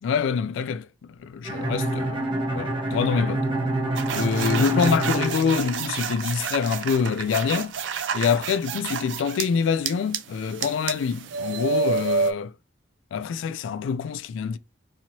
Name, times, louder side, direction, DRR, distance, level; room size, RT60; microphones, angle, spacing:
voice 1, 0.0-3.5 4.1-7.7 8.1-12.5 13.1-14.6, left 6 dB, 80° left, 0.3 m, -26 dB
Bowed string instrument, 1.4-6.3, right 1 dB, 25° right, 0.7 m, -27 dB
sound 1, 4.0-9.5 9.9-12.3, right 5 dB, 75° right, 0.4 m, -29 dB
2.7 x 2.7 x 2.9 m
head